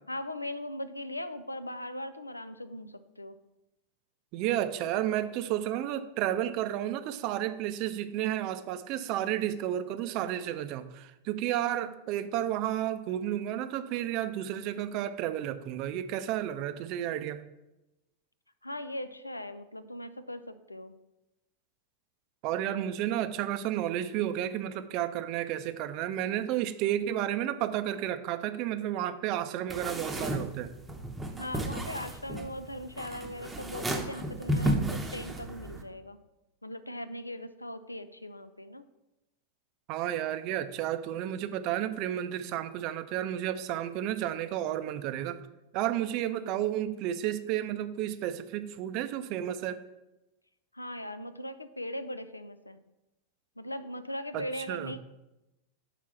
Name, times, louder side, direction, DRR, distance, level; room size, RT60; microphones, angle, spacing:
voice 1, 0.1-3.4 11.5-12.0 18.6-21.0 31.4-36.2 36.6-38.8 46.2-46.8 50.7-52.8 53.6-55.0, left 1 dB, 85° left, 12 dB, 0.4 m, -39 dB
voice 2, 4.3-17.4 22.4-30.7 39.9-45.4 45.7-49.8 54.3-54.9, right 12 dB, 40° right, 11 dB, 0.5 m, -32 dB
sound 1, 29.7-35.8, right 1 dB, 10° right, 0.8 m, -33 dB
5.8 x 4.1 x 5.8 m, 0.96 s
figure-of-eight pair, 90°, 0 cm